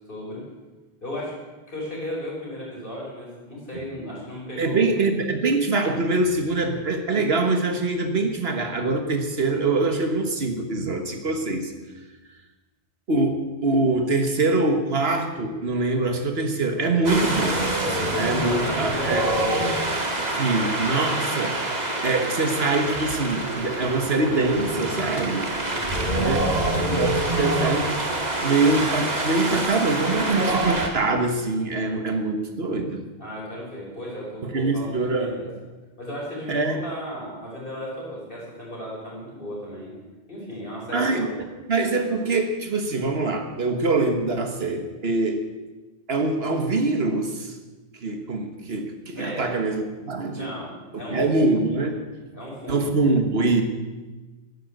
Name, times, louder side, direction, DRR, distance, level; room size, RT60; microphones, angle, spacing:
voice 1, 0.1-0.4 1.0-1.3 1.7-4.9 18.0-20.0 20.3-20.5 25.6-26.9 33.2-35.5 36.0-39.9 40.3-41.4 49.1-49.5 50.3-51.7 52.3-52.9, equal, 55° left, -4 dB, 5.8 m, -35 dB
voice 2, 4.6-11.7 13.1-19.3 20.4-25.5 26.1-28.0 28.4-33.0 34.4-35.3 36.5-36.8 40.9-41.3 41.7-45.4 46.1-47.6 48.0-50.5 50.9-52.0 52.7-53.6, right 3 dB, 70° right, 6 dB, 1.7 m, -24 dB
Wind, 17.0-30.9, right 2 dB, 45° right, 1.9 m, -26 dB
12.5 x 10.5 x 8.0 m, 1.2 s
omnidirectional pair, 1.1 m